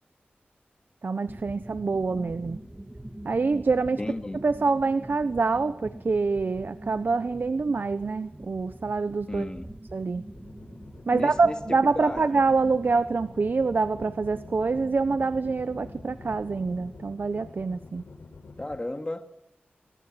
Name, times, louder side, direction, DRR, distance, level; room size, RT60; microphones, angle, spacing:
voice 1, 1.0-2.6 3.2-4.0 4.4-9.5 9.9-10.2 11.1-18.0, right 4 dB, 55° right, 1.1 m, -26 dB
sound 1, 1.3-17.0, right 1 dB, 15° right, 2.3 m, -44 dB
voice 2, 4.0-4.4 9.3-9.7 11.1-11.6 11.9-12.4 18.6-19.3, left 1 dB, 20° left, 2.6 m, -34 dB
sound 2, 10.3-18.8, left 3 dB, 80° left, 5.6 m, -47 dB
27.0 x 23.0 x 7.8 m
wide cardioid pair, 90°, 4 cm